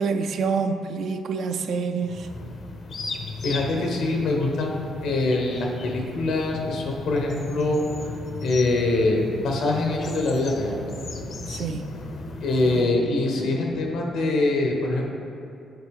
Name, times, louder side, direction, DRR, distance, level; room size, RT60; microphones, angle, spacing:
voice 1, 0.0-2.3 11.5-12.0, right 5 dB, 70° right, 7 dB, 0.4 m, -27 dB
sound 1, 2.0-12.8, left 2 dB, 55° left, 0.6 m, -36 dB
voice 2, 3.4-7.8 8.4-10.8 12.4-15.1, left 2 dB, 80° left, 0 dB, 1.0 m, -24 dB
7.9 x 4.1 x 3.6 m, 2.7 s
cardioid pair, 90°, 0 cm